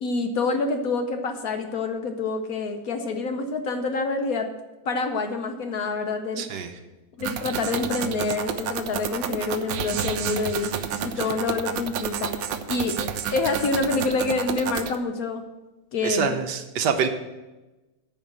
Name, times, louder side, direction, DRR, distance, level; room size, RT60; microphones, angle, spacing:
voice 1, 0.0-4.5 4.9-6.5 7.2-10.7 11.0-12.3 12.7-15.4 15.9-16.3, left 3 dB, 60° left, 6 dB, 1.1 m, -27 dB
voice 2, 6.4-6.7 16.0-17.1, right 7 dB, 70° right, 7 dB, 1.4 m, -25 dB
sound 1, 7.2-15.0, right 8 dB, 90° right, 1.4 m, -30 dB
9.3 x 5.6 x 7.4 m, 1.1 s
omnidirectional pair, 2.0 m